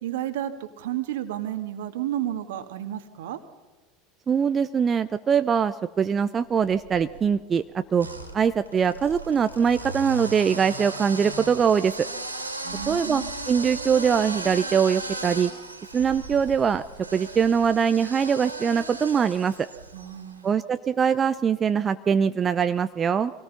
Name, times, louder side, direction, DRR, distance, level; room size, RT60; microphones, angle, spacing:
voice 1, 0.0-3.4 12.6-13.3 19.9-20.6, right 12 dB, 65° right, 8 dB, 1.9 m, -32 dB
voice 2, 4.3-8.1 8.3-12.1 12.9-15.5 15.9-16.8 17.1-19.7 20.4-23.3, right 7 dB, 30° right, 11 dB, 0.7 m, -22 dB
sound 1, 6.6-7.3 8.0-20.3, right 2 dB, 90° right, 3.3 m, -36 dB
25.0 x 18.5 x 5.7 m, 1.2 s
figure-of-eight pair, 75°, 0 cm